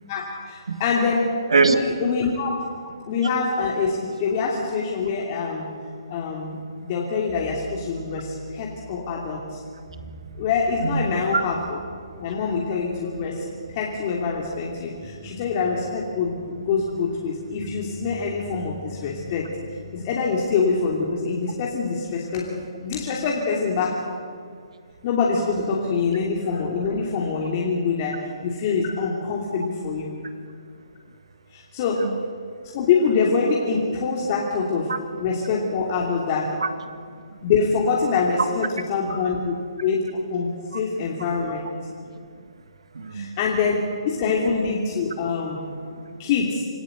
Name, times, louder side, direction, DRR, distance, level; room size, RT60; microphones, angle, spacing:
voice 1, 0.1-1.3 1.7-2.7 3.1-5.7 6.1-6.6 6.8-9.6 10.4-11.6 12.2-13.5 13.7-19.5 19.9-23.9 25.0-30.1 31.5-32.1 32.7-34.9 35.2-36.5 37.4-39.5 39.8-41.6 43.1-45.6 46.2-46.6, left 5 dB, 35° left, -2 dB, 2.8 m, -25 dB
voice 2, 1.5-1.8 10.8-11.4 32.0-32.2 34.9-35.0 36.6-37.0 37.3-37.4 40.7-40.8 41.9-42.5 42.9-43.4 45.8-46.2, right 4 dB, 80° right, 10 dB, 1.8 m, -24 dB
sound 1, 7.3-21.8, left 1 dB, 10° right, 4.4 m, -43 dB
26.0 x 14.0 x 8.0 m, 2.1 s
hypercardioid pair, 145°, 3 cm